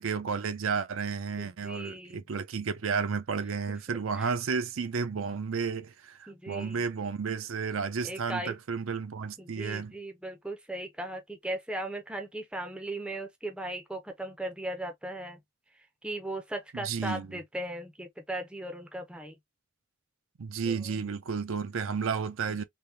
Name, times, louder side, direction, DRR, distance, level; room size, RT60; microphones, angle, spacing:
voice 1, 0.0-9.9 16.7-17.4 20.4-22.6, right 5 dB, 75° right, 0.5 m, -32 dB
voice 2, 1.4-2.3 3.7-4.3 6.3-6.9 8.0-8.6 9.4-15.4 16.0-19.4 20.7-21.0, right 1 dB, 5° right, 0.5 m, -38 dB
3.4 x 2.1 x 2.7 m
head